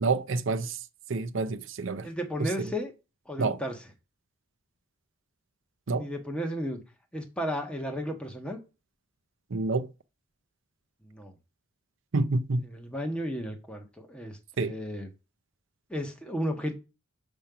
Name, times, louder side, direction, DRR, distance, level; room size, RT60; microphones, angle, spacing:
voice 1, 0.0-0.8 1.1-2.1 2.4-2.7 3.4-3.6 5.9-6.1 9.5-9.9 12.1-12.6 14.6-14.7, right 3 dB, 60° right, 0.6 m, -28 dB
voice 2, 2.0-2.9 3.3-3.9 6.0-6.8 7.1-8.6 11.0-11.3 12.6-15.1 15.9-16.8, equal, 5° left, 1.3 m, -34 dB
5.6 x 5.3 x 5.7 m
head